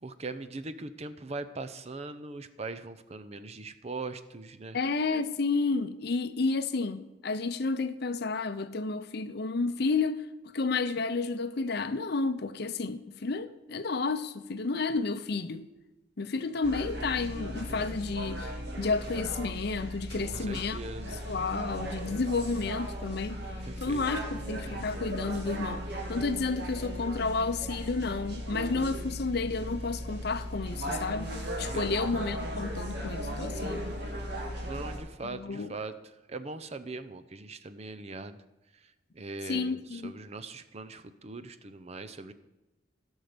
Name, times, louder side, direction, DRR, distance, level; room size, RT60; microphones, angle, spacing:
voice 1, 0.0-4.8 20.2-21.2 23.6-24.1 31.6-32.0 34.6-35.9 36.3-38.4 39.1-42.3, right 3 dB, 35° right, 0.6 m, -40 dB
voice 2, 4.7-10.2 10.5-15.7 16.2-23.4 23.8-25.8 26.1-31.3 31.6-33.8 35.2-35.7 39.5-40.1, left 4 dB, 60° left, 0.7 m, -31 dB
sound 1, 16.6-35.0, equal, 60° right, 2.4 m, -37 dB
16.0 x 6.4 x 5.1 m
head